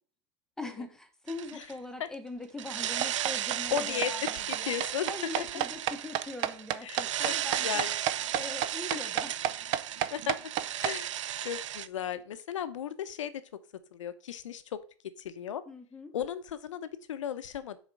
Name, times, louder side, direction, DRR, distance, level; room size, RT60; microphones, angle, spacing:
voice 1, 0.6-4.8 5.1-7.9 8.3-9.3 15.7-16.1, left 2 dB, 5° left, 6 dB, 0.9 m, -42 dB
sound 1, 1.3-1.7 2.6-11.9, right 11 dB, 85° right, 0.5 m, -35 dB
sound 2, 3.0-10.9, right 12 dB, 35° right, 0.5 m, -30 dB
voice 2, 3.7-4.1 4.5-5.5 6.8-7.9 8.6-8.8 10.1-10.4 10.8-13.4 13.9-14.8 15.2-15.6 16.1-17.8, left 9 dB, 85° left, 12 dB, 0.9 m, -36 dB
6.6 x 4.4 x 5.9 m, 0.41 s
supercardioid pair, 145°, 16 cm